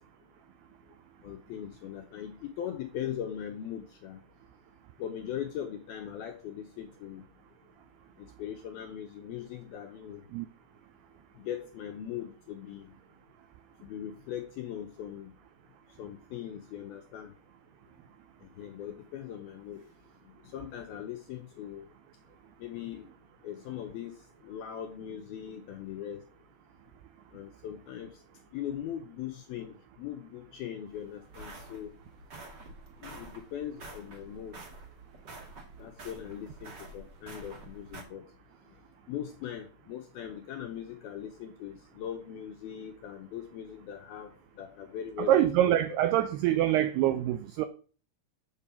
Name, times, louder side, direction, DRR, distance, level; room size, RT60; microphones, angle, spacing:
voice 1, 1.2-4.2 5.0-7.2 8.4-10.2 11.4-12.9 13.8-15.3 16.0-17.3 18.6-19.8 20.5-21.9 22.6-23.1 23.4-24.1 24.4-26.2 27.3-28.1 28.5-31.9 33.0-34.6 35.8-38.2 39.1-44.3 44.6-45.8 46.0-46.3, left 10 dB, 75° left, 2.3 m, -40 dB
sound 1, 30.9-38.0, right 2 dB, 50° right, 1.3 m, -48 dB
voice 2, 45.2-47.7, right 12 dB, 85° right, 2.3 m, -25 dB
8.3 x 7.4 x 7.0 m
omnidirectional pair, 5.5 m